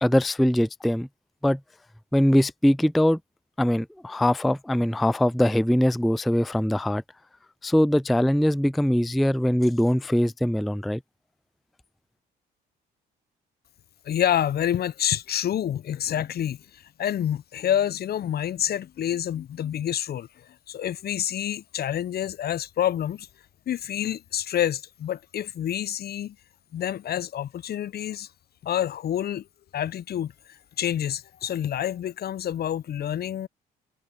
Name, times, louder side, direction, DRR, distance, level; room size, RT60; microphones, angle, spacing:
voice 1, 0.0-1.1 1.4-1.6 2.1-3.2 3.6-7.0 7.6-11.0, left 1 dB, ahead, 0.3 m, -22 dB
voice 2, 14.0-23.3 23.7-26.4 26.7-28.3 28.6-29.5 29.7-33.5, left 10 dB, 50° left, 0.6 m, -28 dB
hypercardioid pair, 60°, 21 cm